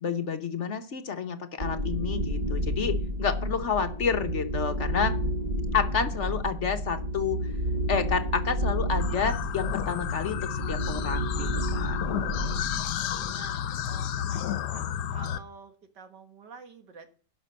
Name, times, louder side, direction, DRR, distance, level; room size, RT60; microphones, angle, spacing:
voice 1, 0.0-5.2 5.7-7.4 7.9-12.0, left 6 dB, 50° left, 8 dB, 1.0 m, -30 dB
sound 1, 1.6-13.3, equal, 35° right, 0.8 m, -31 dB
sound 2, 9.0-15.4, left 10 dB, 80° left, 1.3 m, -32 dB
voice 2, 13.3-14.9 15.1-17.1, right 5 dB, 85° right, 8 dB, 2.2 m, -48 dB
12.0 x 5.9 x 7.6 m, 0.42 s
omnidirectional pair, 1.8 m